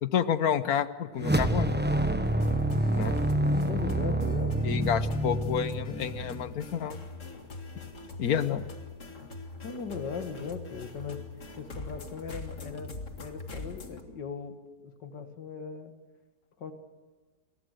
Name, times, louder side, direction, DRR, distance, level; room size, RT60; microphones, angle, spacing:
voice 1, 0.0-1.8 3.0-3.2 4.6-7.0 8.2-8.6, left 8 dB, 60° left, 13 dB, 1.4 m, -29 dB
sound 1, 1.2-6.6, right 1 dB, 10° right, 0.9 m, -27 dB
sound 2, 2.2-14.0, left 3 dB, 45° left, 2.3 m, -43 dB
voice 2, 3.6-4.6 6.0-6.1 9.6-11.2 11.6-14.6 14.8-15.9 16.6-16.7, left 5 dB, 90° left, 7 dB, 2.4 m, -39 dB
28.5 x 23.0 x 6.7 m, 1.3 s
omnidirectional pair, 1.8 m